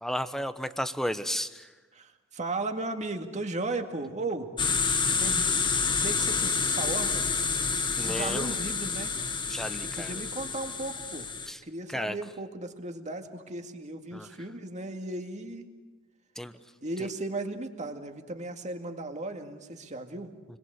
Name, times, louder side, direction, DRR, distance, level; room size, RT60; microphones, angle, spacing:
voice 1, 0.0-1.7 8.0-8.5 9.5-10.1 11.5-11.6 11.9-12.2 14.1-14.3 16.4-16.5, equal, ahead, 11 dB, 1.0 m, -33 dB
voice 2, 1.9-4.5 5.1-5.4 6.0-7.4 8.0-9.2 10.0-11.3 11.6-15.7 16.8-20.3, right 2 dB, 35° right, 5 dB, 2.1 m, -36 dB
sound 1, 4.6-11.5, left 5 dB, 20° left, 1.2 m, -28 dB
29.0 x 22.0 x 8.1 m, 1.3 s
head